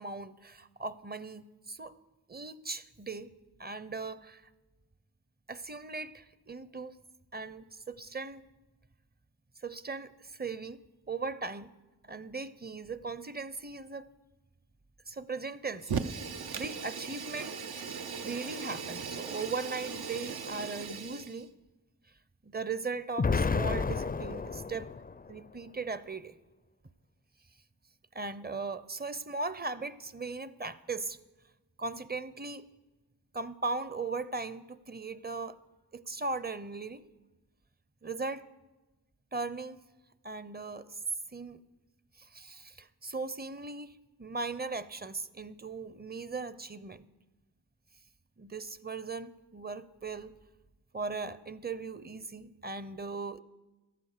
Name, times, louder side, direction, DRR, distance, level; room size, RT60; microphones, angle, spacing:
voice 1, 0.0-1.9 2.3-3.3 3.6-4.4 5.5-6.9 7.3-8.5 9.6-10.8 11.1-11.7 12.1-14.1 15.1-15.9 16.5-17.6 18.2-21.5 22.4-24.9 25.3-26.4 28.1-31.2 31.8-32.6 33.3-35.6 35.9-37.0 38.0-38.4 39.3-39.8 40.2-41.0 41.3-41.6 42.2-47.1 48.4-50.3 50.9-53.4, right 3 dB, 25° right, 15 dB, 0.7 m, -38 dB
Fire, 15.8-21.4, right 6 dB, 70° right, 0.8 m, -38 dB
Explosion, 23.2-25.3, left 4 dB, 25° left, 0.4 m, -30 dB
13.5 x 10.0 x 6.6 m, 1.1 s
cardioid pair, 45°, 38 cm